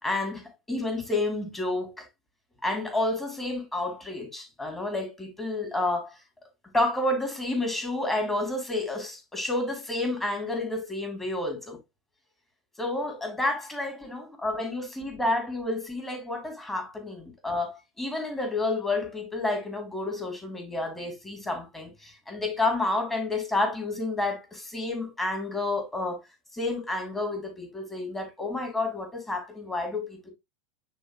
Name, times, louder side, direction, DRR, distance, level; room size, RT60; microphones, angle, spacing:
voice 1, 0.0-2.0 2.6-6.2 6.7-11.8 12.8-26.2 26.5-30.3, left 2 dB, 10° left, 3.4 m, -30 dB
9.9 x 4.0 x 2.6 m
figure-of-eight pair, 80°, 3 cm